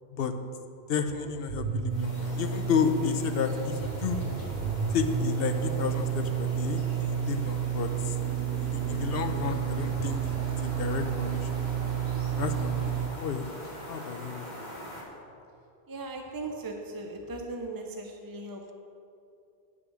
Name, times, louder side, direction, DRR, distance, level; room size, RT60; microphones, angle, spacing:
voice 1, 0.9-4.2 4.9-8.2 8.6-10.2 10.6-11.6 12.4-13.5 13.9-14.5, left 6 dB, 70° left, 8 dB, 0.9 m, -31 dB
sound 1, 1.5-13.1, right 8 dB, 80° right, 0.9 m, -31 dB
sound 2, 1.9-15.0, equal, 45° left, 2.0 m, -43 dB
voice 2, 15.9-18.7, right 2 dB, 25° right, 2 dB, 0.6 m, -38 dB
9.3 x 6.2 x 6.2 m, 2.6 s
omnidirectional pair, 1.0 m